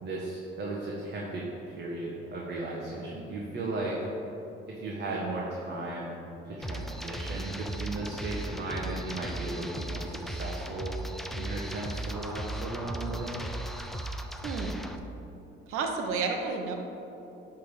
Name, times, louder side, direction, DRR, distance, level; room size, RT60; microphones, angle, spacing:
voice 1, 0.0-4.0 4.7-6.1 6.4-11.0 11.3-13.4, right 2 dB, 55° right, -4 dB, 1.4 m, -36 dB
sound 1, 6.6-15.0, right 1 dB, ahead, 0.5 m, -37 dB
voice 2, 14.4-14.8 15.7-16.8, right 4 dB, 90° right, 3 dB, 1.0 m, -31 dB
10.5 x 3.7 x 6.5 m, 3.0 s
cardioid pair, 90°, 21 cm